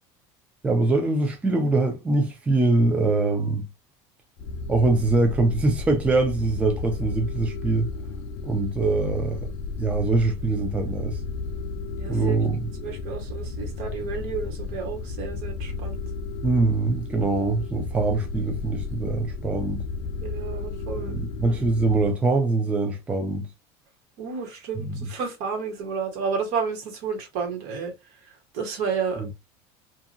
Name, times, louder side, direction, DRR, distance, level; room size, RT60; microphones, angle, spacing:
voice 1, 0.6-3.7 4.7-7.9 8.4-9.5 9.8-11.2 12.1-12.7 16.4-19.8 21.0-23.5 24.8-25.1 29.2-29.3, right 3 dB, 10° right, 0.5 m, -23 dB
sound 1, 4.4-22.1, left 4 dB, 55° left, 0.4 m, -33 dB
voice 2, 12.0-12.4 12.8-16.0 20.2-21.1 24.2-27.9 28.2-29.3, right 5 dB, 70° right, 1.3 m, -31 dB
2.8 x 2.5 x 2.5 m
cardioid pair, 150°, 13 cm